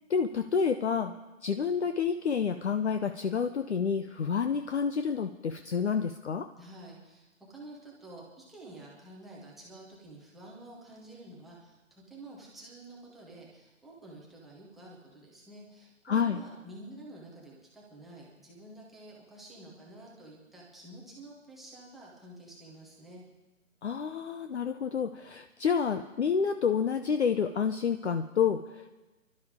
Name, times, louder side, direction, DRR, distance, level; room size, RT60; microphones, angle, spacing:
voice 1, 0.1-1.1 1.4-6.5 16.1-16.4 23.8-29.0, left 6 dB, 50° left, 7 dB, 0.8 m, -29 dB
voice 2, 6.6-23.2, right 1 dB, ahead, -5 dB, 0.8 m, -49 dB
29.5 x 12.0 x 3.6 m, 1.1 s
figure-of-eight pair, 150°, 42 cm